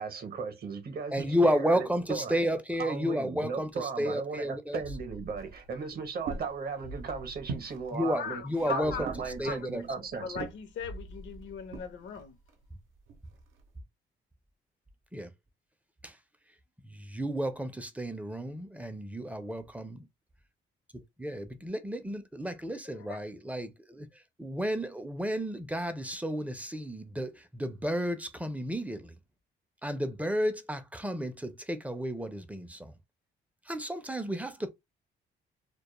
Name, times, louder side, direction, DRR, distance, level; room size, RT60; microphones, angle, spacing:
voice 1, 0.0-2.4 2.8-8.4 8.7-10.5, right 5 dB, 50° right, 0.7 m, -37 dB
voice 2, 1.1-4.8 7.9-9.1 9.4-9.8 15.1-15.3 16.0-16.2 16.8-20.1 21.2-24.1 24.4-29.2 29.8-32.9 33.7-34.7, equal, 5° right, 0.4 m, -32 dB
sound 1, 4.8-6.2 6.5-6.6 6.8-8.2 8.5-8.6 8.8-10.5 10.8-12.2 12.5-12.6, right 1 dB, 85° left, 0.9 m, -47 dB
sound 2, 5.4-13.7, right 5 dB, 85° right, 0.6 m, -45 dB
voice 3, 8.0-9.0 9.4-9.6 10.2-12.4 22.8-23.2, left 6 dB, 70° left, 0.6 m, -39 dB
2.2 x 2.0 x 2.9 m
cardioid pair, 90°, 20 cm